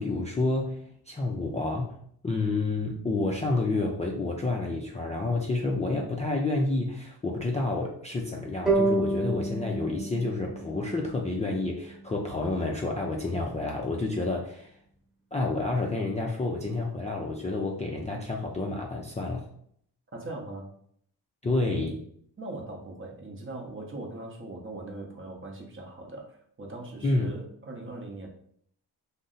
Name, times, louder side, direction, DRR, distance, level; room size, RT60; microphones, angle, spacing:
voice 1, 0.0-2.0 2.2-14.7 15.3-19.5 21.4-22.0 27.0-27.3, left 2 dB, 20° left, -2 dB, 0.3 m, -29 dB
sound 1, 8.7-11.9, right 2 dB, ahead, 1.0 m, -29 dB
voice 2, 20.1-20.7 22.4-28.3, right 2 dB, 30° right, 1 dB, 0.7 m, -40 dB
2.6 x 2.1 x 3.7 m, 0.64 s
cardioid pair, 90°, 41 cm